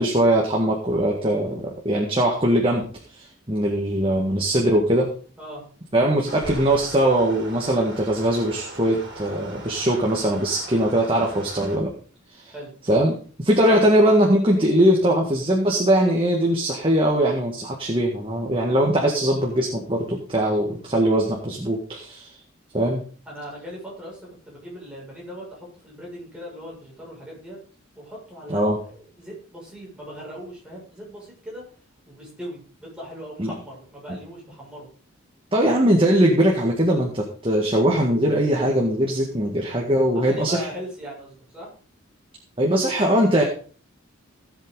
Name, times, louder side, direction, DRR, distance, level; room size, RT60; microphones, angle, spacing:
voice 1, 0.0-2.8 3.1-5.1 5.9-11.9 12.4-12.5 12.9-22.3 22.7-23.0 28.5-28.8 33.4-33.5 35.5-40.7 42.6-43.4, right 1 dB, 25° right, -1 dB, 1.9 m, -21 dB
sound 1, 6.3-11.8, right 1 dB, 55° right, 3.6 m, -39 dB
voice 2, 23.2-27.6 27.9-31.6 32.1-34.9 40.1-41.7, equal, 5° right, -5 dB, 6.7 m, -39 dB
17.0 x 7.8 x 4.1 m, 0.41 s
head